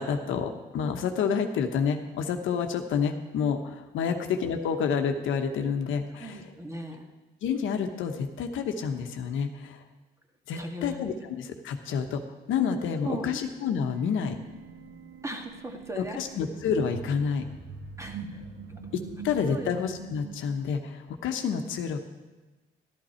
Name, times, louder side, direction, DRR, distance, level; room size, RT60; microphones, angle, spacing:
voice 1, 0.0-6.4 7.4-9.8 10.5-12.2 12.5-14.4 16.0-17.4 18.9-22.0, left 6 dB, 80° left, 5 dB, 1.1 m, -29 dB
voice 2, 6.2-7.1 10.6-11.0 13.0-13.4 15.2-16.2 18.0-18.4 19.5-19.7, right 1 dB, 15° right, 3 dB, 1.6 m, -37 dB
sound 1, 13.9-20.4, right 5 dB, 85° right, 1.9 m, -43 dB
12.0 x 11.5 x 4.4 m, 1.2 s
cardioid pair, 90°, 20 cm